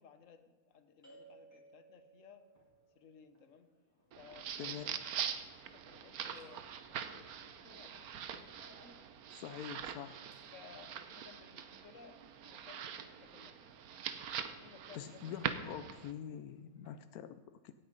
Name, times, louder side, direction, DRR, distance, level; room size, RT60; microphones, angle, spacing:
voice 1, 0.0-2.4 2.9-3.7 4.2-5.0 5.4-9.0 10.5-13.6 14.4-15.3 15.9-16.0, left 6 dB, 60° left, 9 dB, 1.4 m, -59 dB
sound 1, 1.0-17.0, right 2 dB, 10° left, 3.4 m, -66 dB
sound 2, 4.1-16.1, right 8 dB, 80° right, 1.3 m, -43 dB
voice 2, 4.6-5.0 9.3-10.2 14.9-17.7, left 9 dB, 85° left, 11 dB, 1.1 m, -45 dB
17.5 x 8.6 x 5.3 m, 1.4 s
omnidirectional pair, 1.5 m